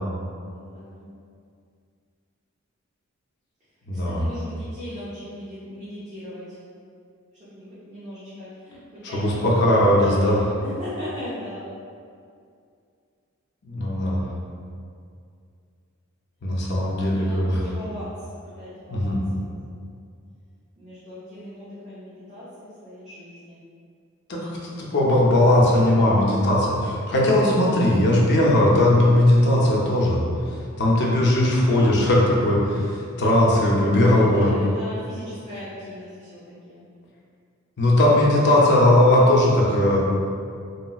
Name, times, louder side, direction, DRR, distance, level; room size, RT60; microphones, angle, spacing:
voice 1, 0.5-1.1 3.9-6.6 7.5-11.7 17.0-18.3 18.6-19.5 20.8-23.6 33.8-36.4 36.6-36.8, equal, 35° right, -13 dB, 0.8 m, -39 dB
voice 2, 3.9-4.2 9.1-10.5 13.6-14.2 16.4-17.6 18.9-19.2 24.3-24.5 24.8-30.2 30.8-34.5 37.8-40.0, left 1 dB, 55° left, -4 dB, 0.6 m, -18 dB
3.1 x 2.8 x 2.3 m, 2.3 s
head